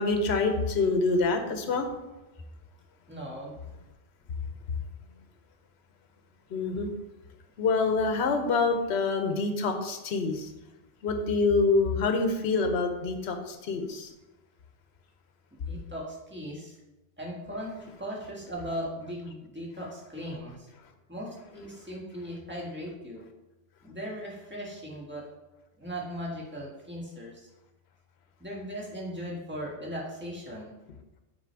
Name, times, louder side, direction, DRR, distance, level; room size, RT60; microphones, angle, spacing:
voice 1, 0.0-1.9 6.5-6.9 7.6-10.5 11.0-14.1, left 3 dB, 75° left, 6 dB, 1.0 m, -26 dB
voice 2, 3.1-3.6 15.5-16.8 17.2-20.7 21.1-23.2 23.8-25.3 25.8-27.5 28.4-30.7, equal, 10° right, -4 dB, 1.5 m, -38 dB
5.9 x 4.8 x 4.5 m, 1.0 s
omnidirectional pair, 1.1 m